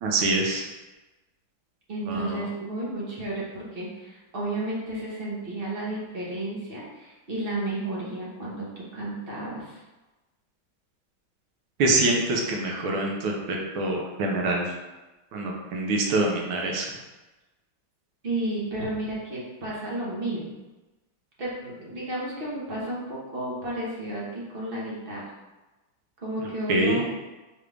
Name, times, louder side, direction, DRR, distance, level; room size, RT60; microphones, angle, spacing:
voice 1, 0.0-0.6 2.1-2.4 11.8-14.7 15.3-16.9 26.7-27.0, right 2 dB, 75° right, 0 dB, 1.4 m, -25 dB
voice 2, 1.9-9.8 18.2-20.5 21.4-25.2 26.2-27.1, right 1 dB, 45° right, -6 dB, 0.7 m, -32 dB
4.8 x 2.5 x 3.3 m, 1.1 s
omnidirectional pair, 2.3 m